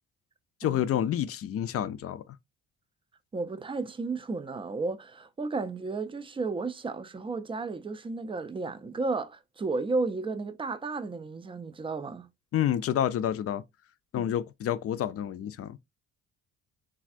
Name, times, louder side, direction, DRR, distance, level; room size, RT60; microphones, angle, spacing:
voice 1, 0.6-2.2 12.5-13.6 14.1-15.8, left 10 dB, 50° left, 0.4 m, -29 dB
voice 2, 3.3-12.3 14.2-14.3, right 3 dB, 20° right, 0.4 m, -33 dB
3.3 x 2.3 x 2.4 m
cardioid pair, 90°, 30 cm